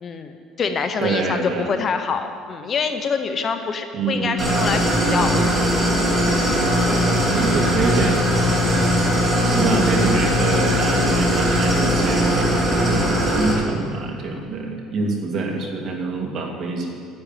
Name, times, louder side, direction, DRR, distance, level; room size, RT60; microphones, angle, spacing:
voice 1, 0.0-4.8 5.1-5.4, left 5 dB, 30° left, 7 dB, 0.8 m, -25 dB
voice 2, 1.0-1.7 3.9-4.4 7.0-8.2 9.5-16.9, right 3 dB, 45° right, 1 dB, 2.3 m, -25 dB
Idling, 4.4-13.5, equal, 25° right, 3.3 m, -19 dB
9.9 x 9.7 x 9.0 m, 2.2 s
cardioid pair, 160°, 0 cm